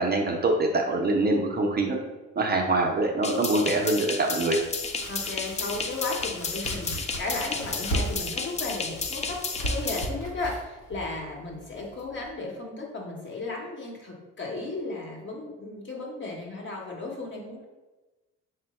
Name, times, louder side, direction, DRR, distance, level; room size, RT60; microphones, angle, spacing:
voice 1, 0.0-2.0 2.4-4.6, right 2 dB, 35° right, 1 dB, 0.5 m, -24 dB
sound 1, 3.2-10.1, left 4 dB, 25° left, 0.3 m, -32 dB
Domestic sounds home sounds, 4.6-12.3, right 1 dB, 80° left, 0.9 m, -37 dB
voice 2, 5.1-17.6, left 2 dB, 40° left, -1 dB, 1.0 m, -35 dB
3.7 x 2.1 x 4.2 m, 1.2 s
cardioid pair, 90°, 30 cm